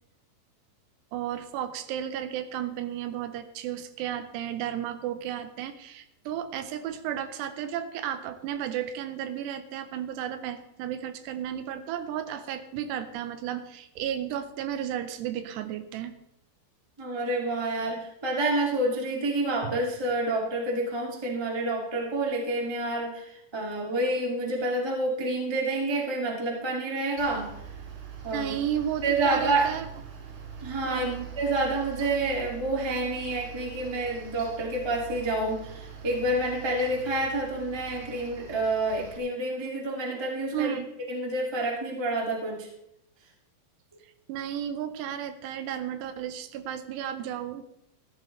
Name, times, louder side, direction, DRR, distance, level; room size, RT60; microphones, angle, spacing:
voice 1, 1.1-16.2 19.6-19.7 28.3-29.9 30.8-31.3 40.5-40.9 44.3-47.6, right 10 dB, 85° right, 10 dB, 2.9 m, -33 dB
voice 2, 17.0-27.5 28.2-28.5 29.0-29.7 30.6-31.1 31.4-40.8 41.1-42.7, right 2 dB, 15° right, -1 dB, 0.8 m, -28 dB
Mechanical fan, 27.2-39.2, right 7 dB, 70° right, 3.7 m, -43 dB
14.5 x 13.0 x 3.2 m, 0.81 s
omnidirectional pair, 4.8 m